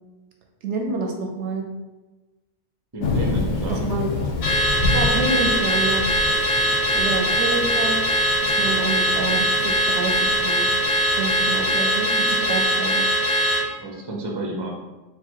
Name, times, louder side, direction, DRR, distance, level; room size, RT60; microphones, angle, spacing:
voice 1, 0.6-1.7 3.7-4.1 4.9-6.4 6.9-10.7 11.2-13.1, right 3 dB, 65° right, 2 dB, 0.8 m, -28 dB
voice 2, 2.9-3.9 13.8-14.7, right 2 dB, 30° right, -1 dB, 0.5 m, -30 dB
Thunder / Rain, 3.0-12.6, left 3 dB, 55° left, 0.8 m, -30 dB
Car / Alarm, 4.4-13.7, equal, 90° left, 1.3 m, -21 dB
4.2 x 2.2 x 4.5 m, 1.2 s
omnidirectional pair, 1.4 m